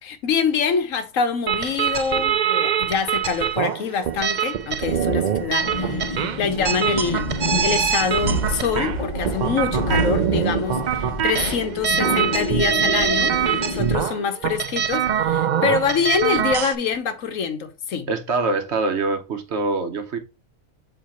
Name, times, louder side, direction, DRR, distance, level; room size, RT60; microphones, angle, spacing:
voice 1, 0.0-7.4 7.6-13.3 13.6-18.1, left 6 dB, 80° left, 1.3 m, -25 dB
sound 1, 1.5-16.8, right 8 dB, 90° right, 0.4 m, -24 dB
sound 2, 5.6-13.8, equal, 25° left, 1.3 m, -28 dB
voice 2, 18.1-20.2, right 3 dB, 60° right, 1.2 m, -24 dB
7.4 x 3.3 x 4.3 m
omnidirectional pair, 1.4 m